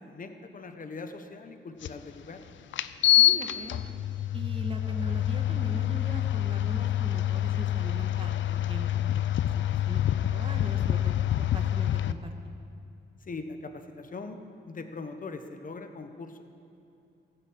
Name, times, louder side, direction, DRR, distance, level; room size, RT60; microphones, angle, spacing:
voice 1, 0.1-2.4 13.2-14.4 14.7-16.4, left 3 dB, 45° left, 7 dB, 1.1 m, -41 dB
sound 1, 1.8-1.9 2.7-12.1, left 12 dB, 80° left, 0.5 m, -26 dB
voice 2, 3.2-3.8 4.3-9.4 9.7-12.3, right 2 dB, 30° right, 3 dB, 1.7 m, -41 dB
15.5 x 6.7 x 8.8 m, 2.7 s
cardioid pair, 75°, 19 cm